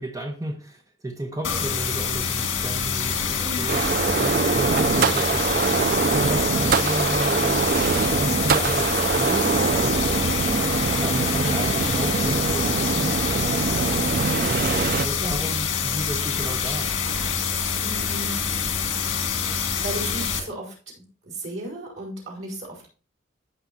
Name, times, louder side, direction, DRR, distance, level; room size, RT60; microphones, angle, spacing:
voice 1, 0.0-3.8 4.2-7.7 8.1-10.5 11.0-16.9, right 1 dB, 15° right, 0.9 m, -33 dB
sound 1, 1.4-20.4, left 6 dB, 75° left, 2.0 m, -26 dB
voice 2, 3.4-3.8 15.2-15.6 17.3-18.4 19.5-20.7 21.2-22.9, right 1 dB, 90° right, 5.0 m, -36 dB
sound 2, 3.7-15.1, right 5 dB, 45° right, 0.3 m, -23 dB
14.5 x 5.7 x 2.7 m
head